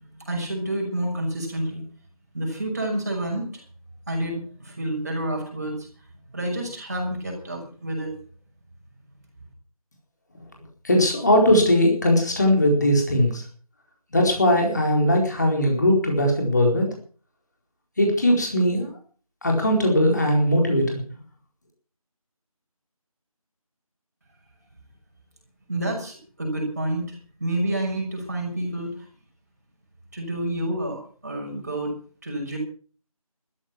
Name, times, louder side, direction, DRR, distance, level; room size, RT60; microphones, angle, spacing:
voice 1, 0.2-1.8 2.3-3.6 4.1-5.9 6.3-8.1 25.7-29.1 30.1-32.0 32.2-32.6, right 1 dB, 25° right, 0 dB, 6.1 m, -29 dB
voice 2, 10.8-13.4 14.1-16.9 18.0-18.9 19.4-21.0, left 1 dB, 30° left, 1 dB, 4.4 m, -19 dB
14.0 x 14.0 x 6.0 m, 0.42 s
figure-of-eight pair, 170°, 19 cm